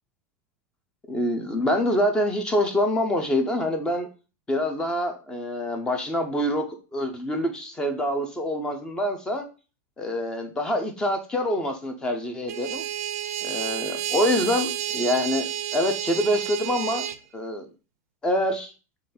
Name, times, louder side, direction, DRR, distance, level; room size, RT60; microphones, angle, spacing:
voice 1, 1.1-4.1 4.5-9.5 10.0-12.8 13.4-17.1 17.3-17.7 18.2-18.7, left 1 dB, 10° left, 5 dB, 0.5 m, -26 dB
sound 1, 12.5-17.2, right 11 dB, 75° right, 0.5 m, -30 dB
3.8 x 3.1 x 4.2 m, 0.33 s
supercardioid pair, 170°, 8 cm